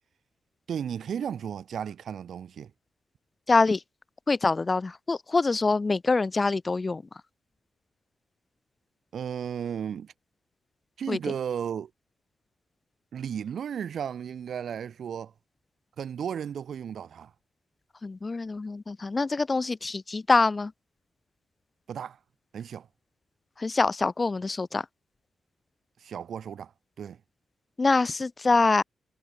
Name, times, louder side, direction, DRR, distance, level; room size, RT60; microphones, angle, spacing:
voice 1, 0.7-2.7 9.1-10.1 11.0-11.9 13.1-15.3 16.0-17.3 21.9-22.2 22.5-22.9 26.0-26.7 27.0-27.2, right 8 dB, 65° right, 6.4 m, -34 dB
voice 2, 3.5-3.8 4.3-7.0 11.1-11.2 18.0-20.7 23.6-24.9 27.8-28.8, left 3 dB, 25° left, 5.4 m, -25 dB
wide cardioid pair, 150°, 0 cm